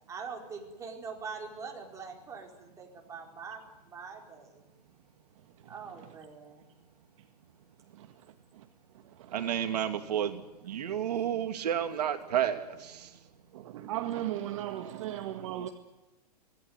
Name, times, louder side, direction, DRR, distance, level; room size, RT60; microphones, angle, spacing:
voice 1, 0.1-3.6 3.9-4.6 5.7-6.6, right 5 dB, 15° right, 4.3 m, -43 dB
voice 2, 9.3-13.1, right 9 dB, 75° right, 2.7 m, -31 dB
voice 3, 13.7-15.7, right 13 dB, 50° right, 1.7 m, -35 dB
26.0 x 18.0 x 9.4 m
hypercardioid pair, 155°, 21 cm